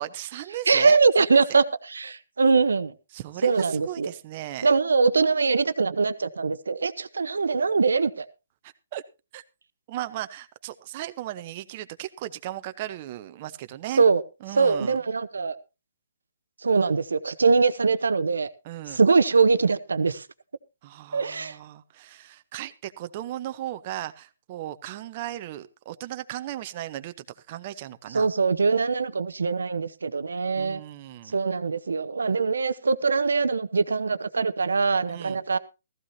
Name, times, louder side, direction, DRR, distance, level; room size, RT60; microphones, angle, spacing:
voice 1, 0.0-1.6 3.1-4.7 8.6-9.0 9.3-9.4 9.9-14.0 14.4-15.0 18.6-19.0 20.8-28.3 30.5-31.3 35.1-35.4, right 13 dB, 35° right, 0.9 m, -36 dB
voice 2, 0.7-2.9 3.4-4.1 4.6-8.3 14.0-14.2 14.5-15.6 16.6-18.5 18.9-20.3 21.1-21.6 28.1-30.8 31.3-35.6, right 4 dB, 80° right, 0.9 m, -22 dB
15.5 x 15.0 x 2.8 m
hypercardioid pair, 140°, 0 cm